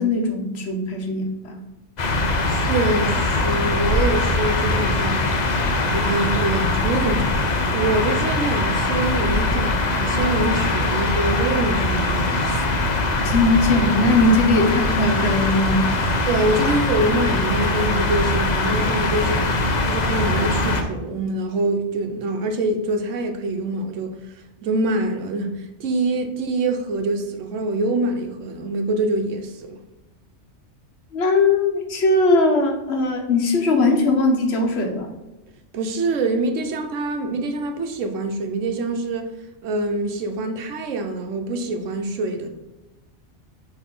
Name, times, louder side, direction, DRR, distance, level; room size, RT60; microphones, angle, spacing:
voice 1, 0.0-1.6 13.2-15.9 31.1-35.1, left 2 dB, 60° left, 1.3 m, -19 dB
sound 1, 2.0-20.8, left 2 dB, 40° left, 0.7 m, -22 dB
voice 2, 2.5-5.4 5.9-12.8 16.2-19.5 19.9-24.2 24.6-29.8 35.7-39.3 39.6-42.5, right 2 dB, 80° right, 1.1 m, -25 dB
6.1 x 3.3 x 5.3 m
omnidirectional pair, 1.3 m